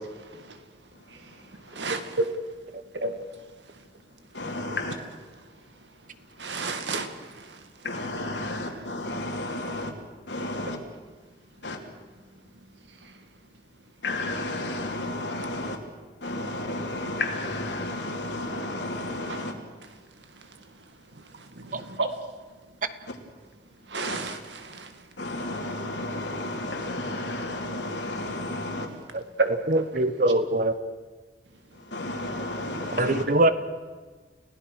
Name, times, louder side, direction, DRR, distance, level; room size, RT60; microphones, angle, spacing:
voice 1, 0.3-4.8 5.3-7.9 8.2-9.6 11.2-11.7 12.2-14.0 19.3-23.1 23.6-25.4 29.1-30.1 31.5-31.9, right 3 dB, 80° right, 2.2 m, -36 dB
voice 2, 0.9-1.8 4.3-5.0 7.8-10.0 10.3-10.8 11.6-11.9 14.0-15.8 16.2-19.5 23.1-23.2 24.0-24.2 25.2-28.9 31.7-33.3, left 2 dB, 85° left, 3.3 m, -32 dB
voice 3, 29.9-30.7 33.0-33.5, right 1 dB, 50° right, 1.2 m, -22 dB
29.5 x 17.0 x 6.5 m
head